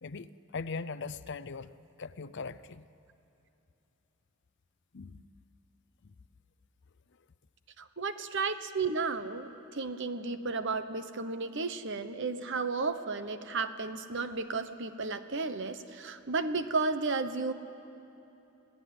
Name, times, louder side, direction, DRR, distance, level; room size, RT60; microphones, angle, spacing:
voice 1, 0.0-1.7 2.0-2.9 4.9-5.3 6.0-6.1, left 4 dB, 55° left, 15 dB, 0.6 m, -40 dB
voice 2, 7.8-17.5, right 4 dB, 55° right, 10 dB, 1.1 m, -33 dB
26.0 x 17.0 x 9.5 m, 2.9 s
head